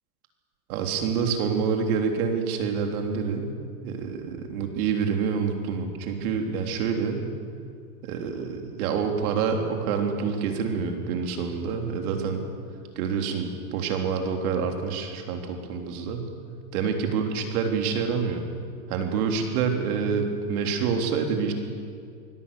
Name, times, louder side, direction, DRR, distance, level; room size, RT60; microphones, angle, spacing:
voice 1, 0.7-3.5 3.8-7.3 8.0-12.5 13.0-16.3 16.7-18.4 18.9-21.5, right 6 dB, 60° right, 4 dB, 3.5 m, -27 dB
24.0 x 17.0 x 6.9 m, 2.2 s
supercardioid pair, 140°, 50 cm